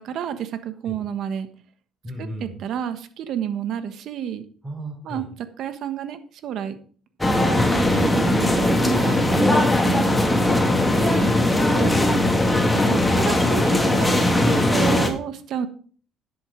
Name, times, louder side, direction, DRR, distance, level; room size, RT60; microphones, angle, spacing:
voice 1, 0.0-1.5 2.2-4.4 5.0-5.3 5.6-6.8 7.7-9.6 9.8-10.2 11.0-11.3 11.7-11.9 12.7-15.7, right 9 dB, 65° right, 10 dB, 1.4 m, -30 dB
voice 2, 2.0-2.6 4.6-5.3 11.1-12.5, left 1 dB, 20° right, 1 dB, 3.6 m, -35 dB
sound 1, 7.2-15.1, left 1 dB, 10° left, 1.9 m, -19 dB
10.5 x 7.9 x 5.1 m, 0.44 s
cardioid pair, 120°, 0 cm